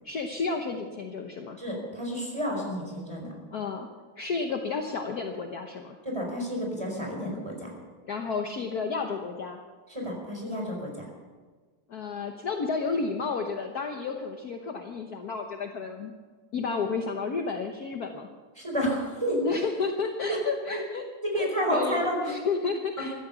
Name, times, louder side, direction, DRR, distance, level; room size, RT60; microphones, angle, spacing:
voice 1, 0.0-1.6 3.5-3.9 4.2-6.0 8.1-9.6 11.9-16.1 16.5-18.3 19.4-21.0 21.3-23.1, left 4 dB, 55° left, 4 dB, 1.4 m, -31 dB
voice 2, 1.6-3.3 6.0-7.7 9.9-11.1 18.6-19.4 20.3-20.4 21.2-22.2 23.0-23.1, equal, 15° right, 0 dB, 4.5 m, -30 dB
15.5 x 13.0 x 7.0 m, 1.4 s
omnidirectional pair, 2.4 m